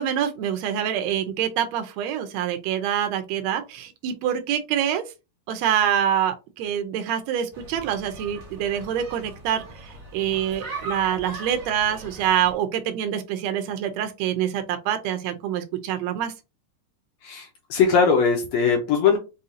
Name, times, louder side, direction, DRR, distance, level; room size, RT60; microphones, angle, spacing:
voice 1, 0.0-5.0 5.5-9.6 10.1-16.3, right 9 dB, 75° right, 1.6 m, -25 dB
sound 1, 7.5-12.5, right 2 dB, 35° right, 1.1 m, -39 dB
voice 2, 17.2-19.2, left 5 dB, 80° left, 1.6 m, -20 dB
5.5 x 2.7 x 2.6 m
omnidirectional pair, 3.7 m